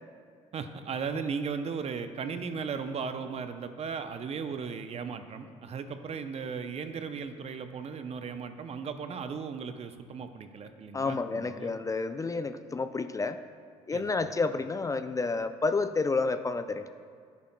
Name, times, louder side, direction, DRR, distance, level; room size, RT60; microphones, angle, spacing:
voice 1, 0.5-11.7 13.9-14.0, right 5 dB, 45° right, 9 dB, 0.6 m, -36 dB
voice 2, 10.9-13.4 13.9-16.9, left 3 dB, 25° left, 10 dB, 0.4 m, -30 dB
10.5 x 8.3 x 2.2 m, 2.1 s
supercardioid pair, 65°, 14 cm